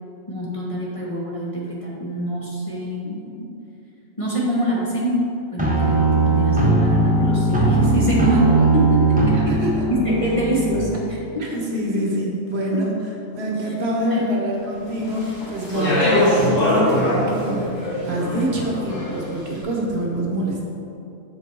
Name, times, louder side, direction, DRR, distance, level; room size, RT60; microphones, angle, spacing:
voice 1, 0.3-3.2 4.2-5.3 5.5-9.6 9.9-11.6 12.7-12.8 13.6-13.7 14.1-14.2 15.7-15.9, equal, 30° left, -6 dB, 0.9 m, -25 dB
sound 1, 5.6-10.7, right 2 dB, 5° right, 1.0 m, -18 dB
voice 2, 9.3-9.9 11.4-12.9 13.3-20.6, right 1 dB, 55° right, -2 dB, 1.1 m, -25 dB
Speech, 15.0-19.4, left 1 dB, 70° left, 1.9 m, -22 dB
6.7 x 5.5 x 4.7 m, 2.8 s
omnidirectional pair, 1.4 m